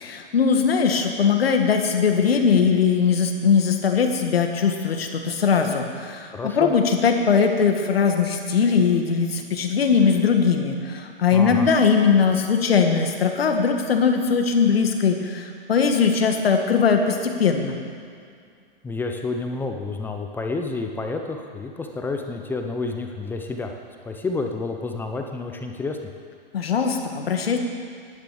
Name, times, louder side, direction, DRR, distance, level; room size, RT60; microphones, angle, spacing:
voice 1, 0.0-17.8 26.5-27.6, left 6 dB, 85° left, 4 dB, 1.7 m, -20 dB
voice 2, 6.3-6.7 11.3-11.7 18.8-23.7 24.0-26.0, left 3 dB, 5° left, 4 dB, 0.5 m, -29 dB
10.5 x 9.7 x 6.9 m, 2.2 s
hypercardioid pair, 140°, 29 cm